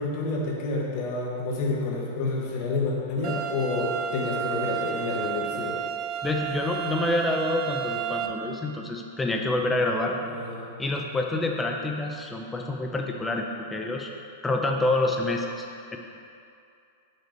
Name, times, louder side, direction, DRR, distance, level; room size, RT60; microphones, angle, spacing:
voice 1, 0.0-5.8 10.2-10.7, left 3 dB, 45° left, -2 dB, 1.2 m, -29 dB
sound 1, 3.2-8.3, right 9 dB, 35° right, 0.5 m, -32 dB
voice 2, 6.2-10.2 10.8-13.5 13.7-14.1 14.4-15.7 15.9-16.0, left 2 dB, 10° left, 1 dB, 0.6 m, -27 dB
5.9 x 5.3 x 3.9 m, 2.5 s
supercardioid pair, 140°, 0 cm